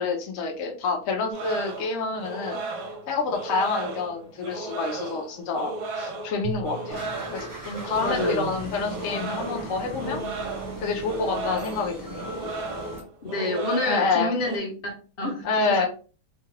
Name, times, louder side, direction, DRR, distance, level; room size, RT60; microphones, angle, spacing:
voice 1, 0.0-2.6 3.1-10.2 10.8-12.3 13.9-14.3 15.4-15.9, left 4 dB, 70° left, 0 dB, 1.0 m, -28 dB
sound 1, 1.3-14.6, right 3 dB, 75° right, 1.1 m, -35 dB
Drum, 6.4-8.8, right 1 dB, 50° right, 0.8 m, -40 dB
sound 2, 6.9-13.0, equal, 20° right, 0.5 m, -38 dB
voice 2, 8.0-8.6 13.2-15.9, left 2 dB, 45° left, -1 dB, 1.0 m, -29 dB
2.9 x 2.3 x 3.1 m, 0.38 s
omnidirectional pair, 1.6 m